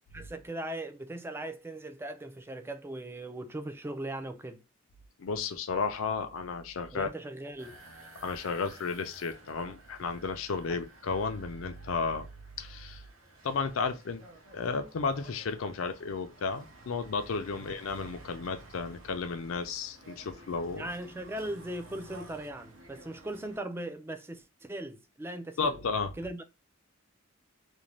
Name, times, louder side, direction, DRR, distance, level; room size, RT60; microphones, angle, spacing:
voice 1, 0.1-4.6 6.9-7.8 10.7-10.8 20.7-25.8 26.2-26.4, right 1 dB, 10° right, 0.3 m, -39 dB
voice 2, 5.2-7.1 8.2-12.3 12.6-13.0 13.4-14.2 14.5-20.9 25.6-26.1, left 4 dB, 80° left, 0.5 m, -33 dB
sound 1, 7.6-23.6, right 2 dB, 80° right, 0.8 m, -53 dB
2.5 x 2.2 x 3.0 m
head